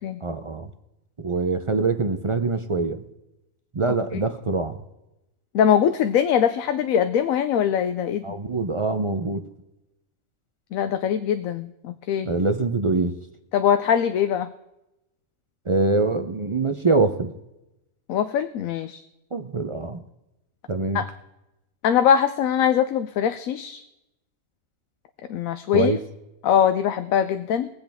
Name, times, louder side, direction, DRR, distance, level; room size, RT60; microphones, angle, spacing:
voice 1, 0.2-0.7 1.2-3.0 3.7-4.8 8.2-9.4 12.3-13.2 15.7-17.3 19.3-20.0 20.7-21.0 25.7-26.0, right 3 dB, 45° right, 8 dB, 0.4 m, -24 dB
voice 2, 5.5-8.4 10.7-12.3 13.5-14.5 18.1-19.0 20.9-21.0 21.8-23.8 25.3-25.9 26.4-27.7, left 8 dB, 85° left, 10 dB, 1.0 m, -22 dB
21.5 x 8.0 x 3.5 m, 0.92 s
omnidirectional pair, 1.4 m